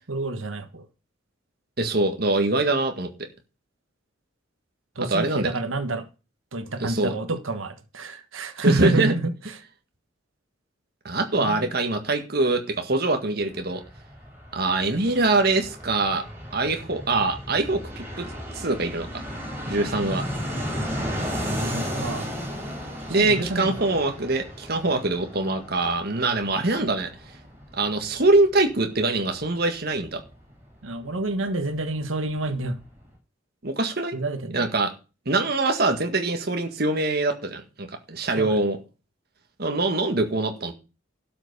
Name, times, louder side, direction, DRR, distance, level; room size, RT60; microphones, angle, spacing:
voice 1, 0.1-0.8 4.9-6.1 6.5-9.6 11.3-11.6 21.6-22.3 23.2-23.9 30.8-32.8 34.1-34.7 38.4-38.6, right 2 dB, 90° right, 1.5 m, -28 dB
voice 2, 1.8-3.1 5.1-5.5 6.8-7.1 8.6-9.1 11.1-13.8 14.5-16.2 16.5-18.2 18.5-19.2 19.7-20.2 23.1-27.1 27.7-30.2 33.6-34.2 34.5-34.9 35.3-38.8 39.6-40.7, right 2 dB, 50° right, 1.8 m, -23 dB
Fixed-wing aircraft airplane, 13.4-31.8 32.0-32.1 32.3-33.1, equal, 10° right, 6.4 m, -35 dB
12.0 x 6.0 x 6.8 m
head